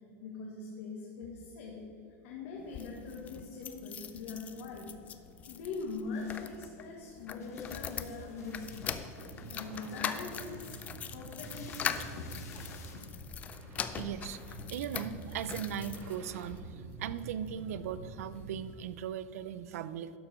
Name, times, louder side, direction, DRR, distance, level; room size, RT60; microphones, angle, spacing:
voice 1, 0.2-1.8 2.2-4.9 5.5-9.0 9.5-10.8 11.1-12.3 12.9-13.0, left 4 dB, 55° left, -1 dB, 1.4 m, -42 dB
sound 1, 2.6-16.6 17.2-18.0 18.4-18.5 18.7-18.8, left 7 dB, 15° left, 0.4 m, -42 dB
sound 2, 5.2-13.9, left 6 dB, 90° left, 1.6 m, -57 dB
sound 3, 8.4-18.6, right 2 dB, 25° right, 1.8 m, -47 dB
voice 2, 13.9-20.1, right 9 dB, 70° right, 14 dB, 0.5 m, -39 dB
11.5 x 4.6 x 6.7 m, 2.6 s
supercardioid pair, 160°, 8 cm